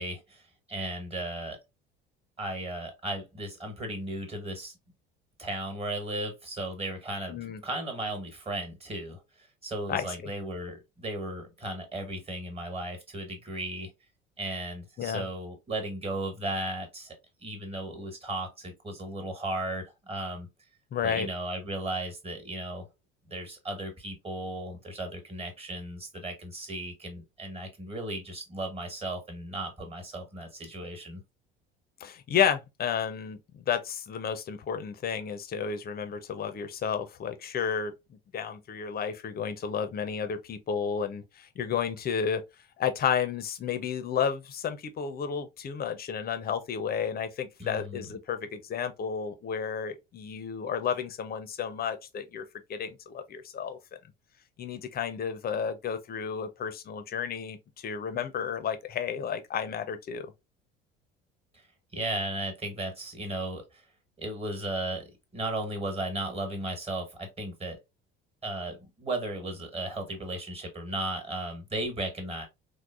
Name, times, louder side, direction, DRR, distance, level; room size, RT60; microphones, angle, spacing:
voice 1, 0.0-1.6 2.4-4.7 5.4-13.9 14.4-20.5 21.0-22.9 23.3-31.2 47.6-48.1 61.9-63.8 64.2-67.8 68.4-72.5, right 1 dB, 20° right, 1.4 m, -35 dB
voice 2, 7.3-7.6 9.9-10.3 15.0-15.3 20.9-21.3 32.0-42.4 42.8-52.4 52.7-53.8 54.6-57.6 57.8-60.3, left 7 dB, 30° left, 0.7 m, -32 dB
4.5 x 2.1 x 2.4 m
figure-of-eight pair, 60°, 31 cm